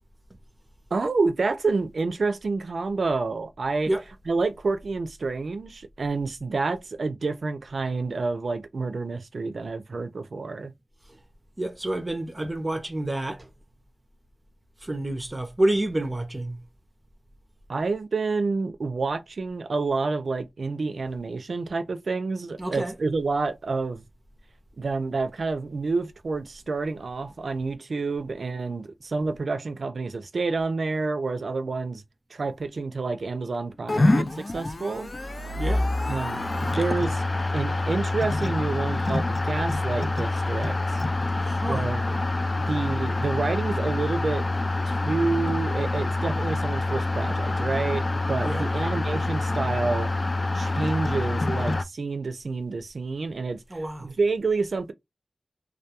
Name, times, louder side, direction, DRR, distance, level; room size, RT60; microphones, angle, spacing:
voice 1, 0.9-3.9 4.3-10.7 17.7-24.0 24.8-32.0 32.3-35.1 36.0-37.2 37.5-41.0 41.7-42.2 42.6-44.4 44.9-50.1 50.5-54.9, right 3 dB, 75° right, 0.4 m, -28 dB
voice 2, 11.6-13.5 14.8-16.6 22.6-22.9 35.6-35.9 41.4-41.9 48.4-48.6 53.7-54.1, right 1 dB, 30° right, 0.6 m, -28 dB
sound 1, 33.9-51.8, left 2 dB, 40° left, 0.4 m, -26 dB
2.3 x 2.2 x 2.8 m
wide cardioid pair, 65°, 0 cm